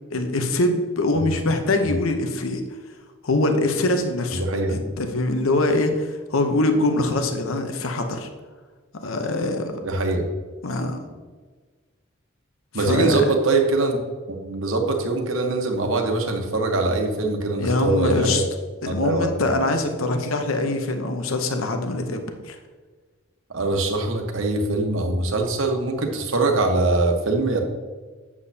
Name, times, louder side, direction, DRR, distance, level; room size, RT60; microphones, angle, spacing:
voice 1, 0.1-2.6 3.2-4.4 4.7-8.3 9.0-9.7 10.6-11.0 12.7-13.3 17.6-18.4 18.8-22.6, left 2 dB, 75° left, 6 dB, 0.8 m, -23 dB
voice 2, 4.3-4.7 9.8-10.3 12.7-14.0 14.3-18.4 18.8-19.5 23.5-27.6, right 2 dB, 65° right, 3 dB, 1.1 m, -23 dB
8.3 x 7.3 x 2.8 m, 1.4 s
head